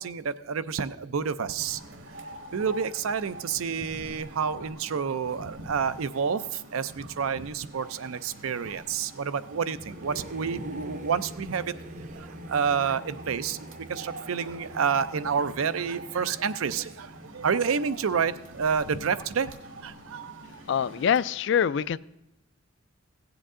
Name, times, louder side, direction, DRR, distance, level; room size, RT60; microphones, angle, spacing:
voice 1, 0.0-1.8 2.5-11.8 12.1-20.6, right 6 dB, 90° right, 13 dB, 0.5 m, -29 dB
sound 1, 1.6-21.2, right 1 dB, 65° right, 1.3 m, -46 dB
Singing / Musical instrument, 7.7-17.3, equal, 40° right, 0.6 m, -45 dB
voice 2, 20.7-22.0, left 8 dB, 60° left, 18 dB, 0.3 m, -24 dB
16.0 x 7.9 x 3.7 m, 0.92 s
head